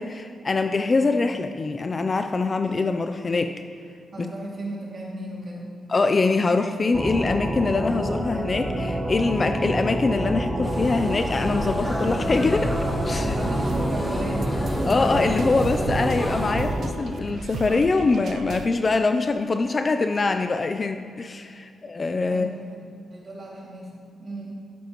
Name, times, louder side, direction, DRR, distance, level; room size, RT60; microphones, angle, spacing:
voice 1, 0.0-3.5 5.9-12.7 13.0-13.4 14.8-22.5, left 3 dB, 25° left, 7 dB, 0.4 m, -23 dB
voice 2, 4.1-5.8 13.2-14.7 15.1-15.4 22.3-22.8 23.1-24.5, right 2 dB, 35° right, -4 dB, 2.3 m, -35 dB
sound 1, 6.9-16.9, right 1 dB, 10° right, 0.7 m, -27 dB
sound 2, 10.6-16.5, left 1 dB, 10° left, 1.4 m, -31 dB
sound 3, 13.4-18.7, right 5 dB, 55° right, 0.4 m, -36 dB
12.5 x 12.0 x 3.0 m, 2.4 s
wide cardioid pair, 175°, 0 cm